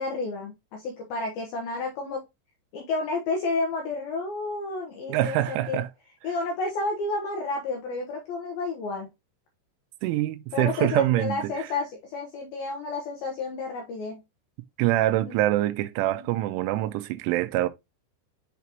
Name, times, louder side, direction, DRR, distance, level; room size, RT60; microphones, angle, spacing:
voice 1, 0.0-2.2 2.7-5.8 6.2-9.1 10.5-14.2 15.3-15.4, left 3 dB, 75° left, 2.2 m, -31 dB
voice 2, 5.1-5.9 10.0-11.7 14.8-17.7, right 14 dB, 85° right, 2.9 m, -25 dB
8.3 x 4.1 x 2.9 m
omnidirectional pair, 5.7 m